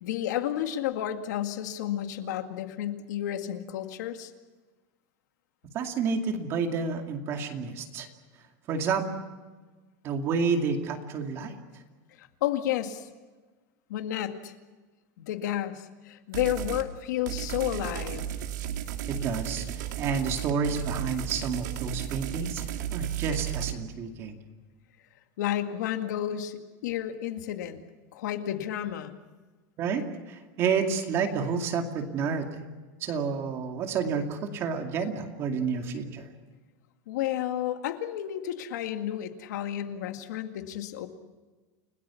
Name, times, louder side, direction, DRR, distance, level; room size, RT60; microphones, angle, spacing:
voice 1, 0.0-4.3 12.1-13.1 13.9-14.5 15.2-18.3 25.4-27.8 28.1-29.1 37.1-41.1, left 11 dB, 75° left, 7 dB, 2.1 m, -31 dB
voice 2, 5.7-8.1 8.7-9.1 10.0-11.6 19.1-22.6 22.9-24.4 29.8-30.0 30.3-32.6 33.0-36.3, right 5 dB, 30° right, 4 dB, 2.4 m, -30 dB
sound 1, 16.3-16.9 17.3-23.7, right 11 dB, 90° right, 2.5 m, -34 dB
30.0 x 19.0 x 7.1 m, 1.3 s
supercardioid pair, 180°, 9 cm